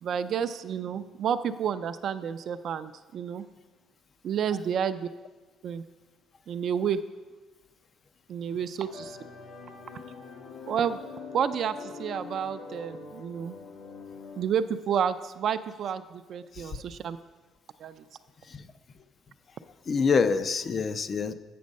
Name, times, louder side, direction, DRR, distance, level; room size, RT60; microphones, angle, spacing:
voice 1, 0.0-3.4 4.2-5.1 5.6-5.8 6.5-7.0 8.3-9.2 10.7-11.0 11.3-13.6 14.4-17.2 17.8-18.0, right 8 dB, 55° right, 11 dB, 0.4 m, -30 dB
sound 1, 8.9-14.5, left 4 dB, 80° left, 1.3 m, -43 dB
voice 2, 19.9-21.3, left 5 dB, 35° left, 11 dB, 0.4 m, -26 dB
8.5 x 6.1 x 5.3 m, 1.2 s
cardioid pair, 130°, 0 cm